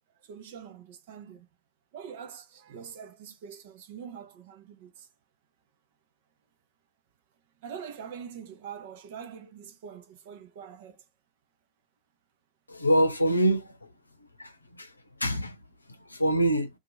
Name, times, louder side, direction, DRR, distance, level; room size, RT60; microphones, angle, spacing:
voice 1, 0.2-1.5 1.9-5.1 7.6-11.0, right 7 dB, 50° right, 0.8 m, -44 dB
voice 2, 12.7-13.7 14.4-14.9 15.2-15.6 16.1-16.7, right 1 dB, 85° left, 0.6 m, -25 dB
2.7 x 2.4 x 4.1 m
figure-of-eight pair, 90°, 0 cm